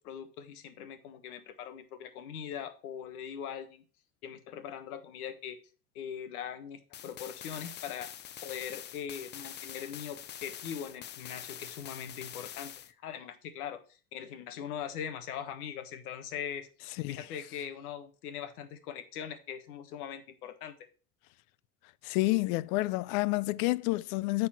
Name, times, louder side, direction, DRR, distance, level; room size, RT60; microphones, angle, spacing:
voice 1, 0.0-3.8 4.2-5.6 5.9-8.1 8.4-16.7 17.1-20.7, left 8 dB, 90° left, 1.5 m, -41 dB
sound 1, 6.9-12.9, left 10 dB, 25° left, 0.4 m, -45 dB
voice 2, 22.0-24.5, left 21 dB, 70° left, 0.6 m, -29 dB
8.7 x 4.3 x 5.7 m
supercardioid pair, 115°, 44 cm